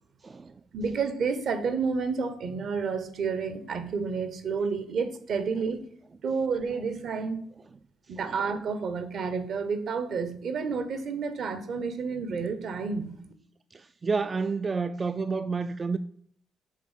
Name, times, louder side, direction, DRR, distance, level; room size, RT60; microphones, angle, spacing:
voice 1, 0.2-0.6 8.2-8.4 13.7-16.0, right 4 dB, 30° right, 0.3 m, -30 dB
voice 2, 0.7-5.8 6.2-7.5 8.1-13.2, right 5 dB, 65° right, 0.9 m, -30 dB
7.5 x 3.6 x 5.6 m
cardioid pair, 90°, 0 cm